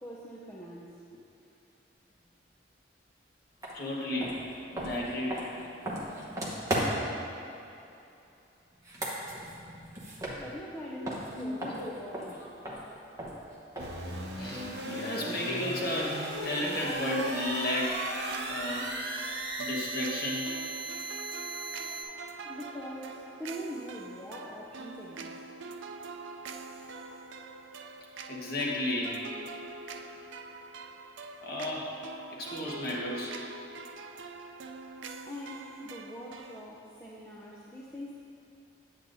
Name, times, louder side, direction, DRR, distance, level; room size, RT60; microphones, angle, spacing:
voice 1, 0.0-1.0 1.4-1.5 10.4-12.5 22.4-25.4 35.3-38.1, equal, 15° left, -4 dB, 0.5 m, -43 dB
sound 1, 3.6-3.8 4.2-7.2 8.7-10.8 11.0-14.1, right 1 dB, 15° right, 0.9 m, -36 dB
voice 2, 3.7-4.4 4.7-5.4 11.0-11.1 11.4-11.9 14.4-18.1 18.5-18.9 19.6-20.5 28.3-29.2 31.4-32.0 32.3-33.4, left 1 dB, 50° left, -4 dB, 1.2 m, -33 dB
sound 2, 13.8-22.0, right 1 dB, 55° right, 1.0 m, -37 dB
sound 3, 18.3-36.6, right 3 dB, 80° right, 0.4 m, -44 dB
9.1 x 8.1 x 2.7 m, 2.8 s
head